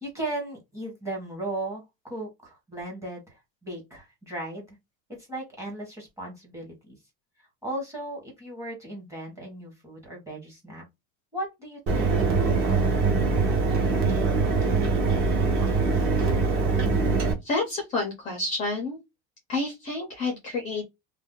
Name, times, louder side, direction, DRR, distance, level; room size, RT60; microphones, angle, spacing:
voice 1, 0.0-4.8 5.2-7.0 7.6-10.9 11.3-13.1, right 1 dB, 10° right, 0.9 m, -37 dB
Mechanisms, 11.9-17.3, right 4 dB, 35° right, 0.8 m, -23 dB
voice 2, 17.4-19.0 19.5-20.8, left 3 dB, 20° left, 0.5 m, -29 dB
2.5 x 2.1 x 3.6 m
cardioid pair, 175°, 38 cm